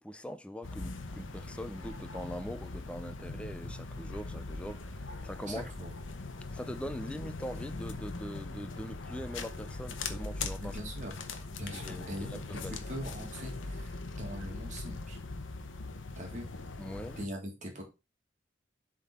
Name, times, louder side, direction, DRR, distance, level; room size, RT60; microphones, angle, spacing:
voice 1, 0.0-5.7 6.5-10.8 11.8-12.8 16.8-17.2, equal, 5° left, 0.5 m, -42 dB
sound 1, 0.6-17.3, left 3 dB, 90° left, 0.9 m, -41 dB
voice 2, 5.5-5.9 10.6-11.1 11.6-15.2 16.2-16.5 17.2-17.8, equal, 40° right, 2.0 m, -42 dB
7.5 x 3.8 x 4.2 m
head